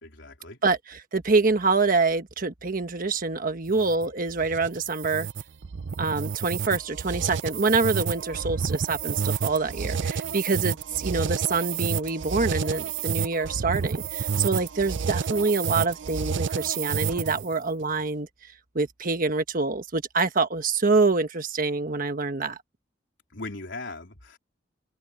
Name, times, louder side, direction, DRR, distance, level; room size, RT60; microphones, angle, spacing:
voice 1, 0.0-0.6 23.3-24.4, left 2 dB, 75° left, 3.7 m, -39 dB
voice 2, 0.6-5.3 6.0-18.3 18.7-22.6, right 3 dB, 50° right, 1.3 m, -26 dB
sound 1, 3.7-17.5, right 6 dB, 70° right, 0.5 m, -30 dB
head